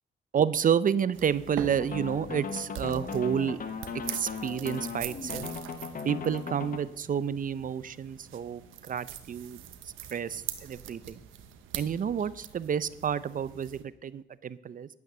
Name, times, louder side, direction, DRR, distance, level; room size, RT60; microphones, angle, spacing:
voice 1, 0.3-3.6 4.1-5.5 6.0-8.6 8.9-9.6 10.1-11.2 11.7-14.9, right 8 dB, 45° right, 17 dB, 0.6 m, -30 dB
sound 1, 1.1-13.8, right 10 dB, 90° right, 1.1 m, -43 dB
sound 2, 1.8-6.8, left 5 dB, 45° left, 1.4 m, -37 dB
10.5 x 8.8 x 6.9 m, 0.78 s
cardioid pair, 90°, 20 cm